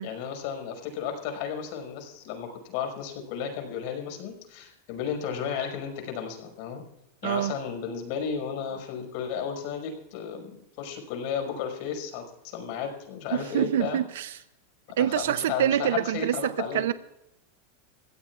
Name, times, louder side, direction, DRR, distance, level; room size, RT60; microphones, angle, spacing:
voice 1, 0.0-6.8 7.2-14.0 15.2-16.8, left 7 dB, 60° left, 4 dB, 5.7 m, -33 dB
voice 2, 7.2-7.5 13.3-14.4 15.0-16.9, right 11 dB, 80° right, 13 dB, 0.6 m, -26 dB
25.5 x 16.5 x 2.5 m, 0.87 s
supercardioid pair, 125°, 0 cm